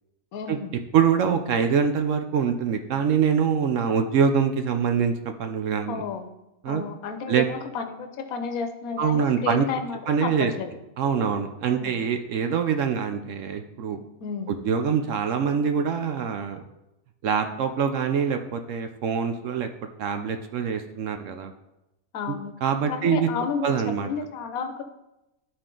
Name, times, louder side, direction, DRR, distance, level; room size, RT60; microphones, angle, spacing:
voice 1, 0.3-0.8 5.9-6.3 6.7-10.7 11.7-12.0 14.2-14.5 22.1-22.5 22.9-24.8, left 5 dB, 70° left, 7 dB, 1.2 m, -32 dB
voice 2, 0.9-6.0 6.6-6.8 7.3-7.4 9.0-9.7 10.1-10.5 11.0-14.0 14.5-16.6 17.2-19.7 20.0-21.5 22.3-23.3 23.6-24.1, right 7 dB, 65° right, 6 dB, 0.9 m, -24 dB
11.5 x 4.3 x 3.8 m, 0.94 s
omnidirectional pair, 1.6 m